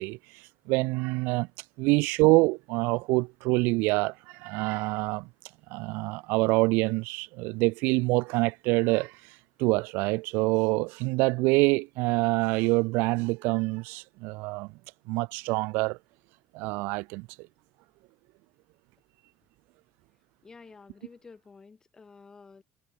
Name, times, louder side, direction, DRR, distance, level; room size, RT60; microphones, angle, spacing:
voice 1, 0.0-1.5 1.8-5.3 5.7-9.2 9.6-14.7 15.1-16.0 16.5-17.3, right 25 dB, 90° right, 0.4 m, -26 dB
voice 2, 20.4-22.6, left 4 dB, 20° left, 3.2 m, -51 dB
cardioid pair, 150°, 3 cm